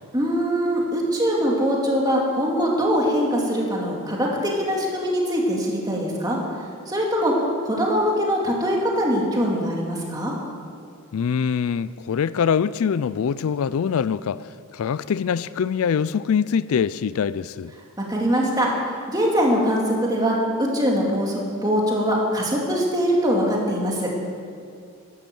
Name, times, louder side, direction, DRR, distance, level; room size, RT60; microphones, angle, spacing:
voice 1, 0.1-6.4 6.9-7.3 7.6-10.3 18.1-18.7 19.1-24.1, equal, 15° right, -2 dB, 2.5 m, -22 dB
voice 2, 11.1-17.7, left 7 dB, 70° left, 17 dB, 0.3 m, -24 dB
12.0 x 12.0 x 7.6 m, 2.4 s
head